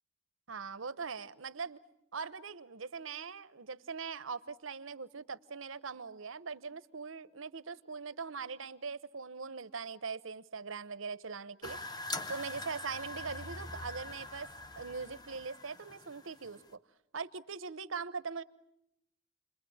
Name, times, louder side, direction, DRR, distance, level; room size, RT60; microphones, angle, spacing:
voice 1, 0.5-1.8 2.1-11.8 12.3-14.5 14.8-16.8 17.1-18.4, right 5 dB, 90° right, 1.0 m, -41 dB
sound 1, 11.6-16.7, left 2 dB, 20° left, 1.0 m, -43 dB
29.5 x 22.0 x 8.7 m
head